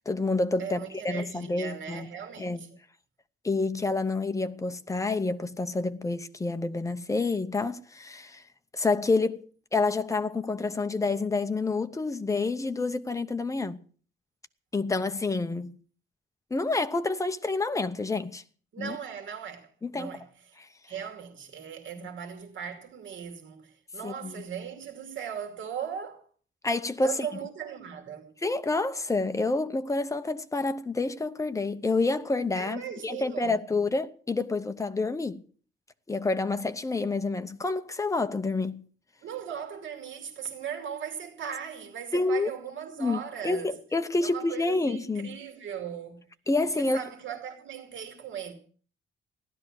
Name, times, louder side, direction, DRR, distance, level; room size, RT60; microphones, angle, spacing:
voice 1, 0.1-2.1 2.4-2.6 3.4-8.4 8.7-13.8 14.7-15.8 16.5-18.4 18.8-19.0 19.8-20.2 22.0-22.1 24.0-24.4 26.6-27.2 28.4-35.4 36.1-38.8 42.1-42.5 43.0-45.4 46.5-47.1, left 3 dB, 15° left, 0.8 m, -28 dB
voice 2, 0.6-2.8 18.7-19.7 19.9-20.6 20.9-26.2 27.0-28.3 32.6-33.6 39.2-43.7 44.2-46.3 46.8-48.5, right 8 dB, 75° right, 2.6 m, -38 dB
15.5 x 12.0 x 6.4 m
wide cardioid pair, 170°, 20 cm